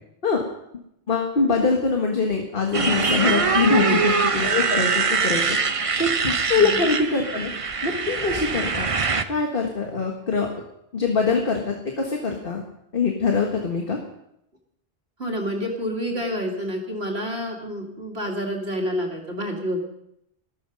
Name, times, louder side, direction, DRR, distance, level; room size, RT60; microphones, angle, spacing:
voice 1, 1.1-5.6 6.0-7.5 7.8-8.9 9.3-10.5 10.9-12.6 12.9-14.0, left 4 dB, 60° left, 1 dB, 1.8 m, -23 dB
Motorcycle, 2.7-9.2, right 5 dB, 35° right, 0.8 m, -23 dB
voice 2, 3.7-4.0 6.5-6.8 15.2-19.8, equal, 75° right, 0 dB, 2.7 m, -28 dB
14.0 x 14.0 x 5.3 m, 0.79 s
omnidirectional pair, 1.1 m